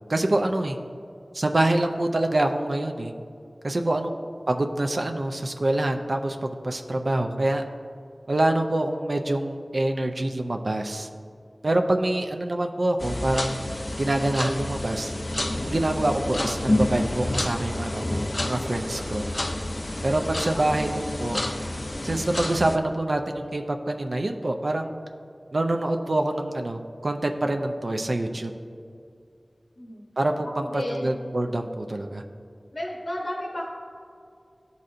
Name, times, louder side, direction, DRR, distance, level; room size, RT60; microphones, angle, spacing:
voice 1, 0.1-0.8 1.3-3.1 3.6-4.1 4.5-7.6 8.3-11.1 11.6-13.6 14.0-15.1 15.6-18.0 18.4-19.2 20.0-21.4 22.0-24.9 25.5-28.5 30.2-30.6 31.0-32.2, right 1 dB, 65° right, 4 dB, 0.4 m, -25 dB
voice 2, 11.8-12.2 20.4-20.8 29.8-30.0 30.6-31.1 32.7-33.6, left 1 dB, 70° left, -5 dB, 0.9 m, -34 dB
sound 1, 13.0-22.8, left 1 dB, 40° left, 0.3 m, -29 dB
12.0 x 4.1 x 2.5 m, 2.4 s
wide cardioid pair, 55°, 0 cm